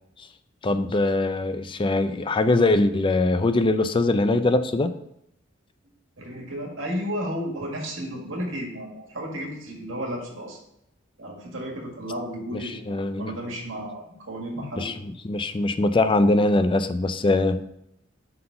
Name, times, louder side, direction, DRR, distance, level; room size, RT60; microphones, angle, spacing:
voice 1, 0.6-4.9 12.5-13.3 14.6-14.9 15.2-17.6, left 2 dB, 25° left, 11 dB, 0.4 m, -22 dB
voice 2, 6.2-10.6 11.2-12.8 13.2-14.9, equal, 75° right, -1 dB, 1.8 m, -33 dB
5.7 x 3.9 x 5.6 m, 0.79 s
head